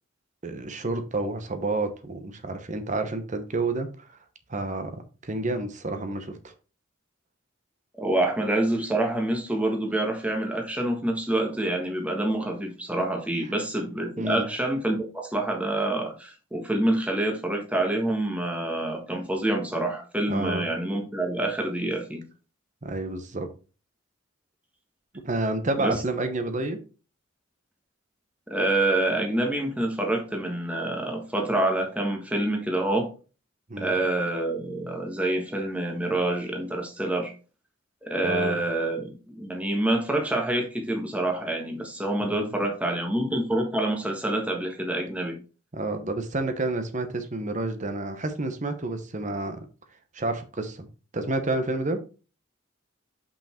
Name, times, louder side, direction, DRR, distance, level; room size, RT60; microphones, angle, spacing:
voice 1, 0.4-4.2 4.5-6.5 14.2-14.4 20.3-20.6 22.8-23.5 25.2-26.8 33.7-33.9 38.2-38.6 42.2-42.5 45.7-49.7 50.1-50.9 51.1-52.0, right 2 dB, 40° right, 1.0 m, -29 dB
voice 2, 7.9-22.2 25.8-26.0 28.5-33.1 33.8-37.3 38.0-45.4, right 1 dB, 5° right, 1.4 m, -27 dB
5.7 x 5.3 x 4.4 m
head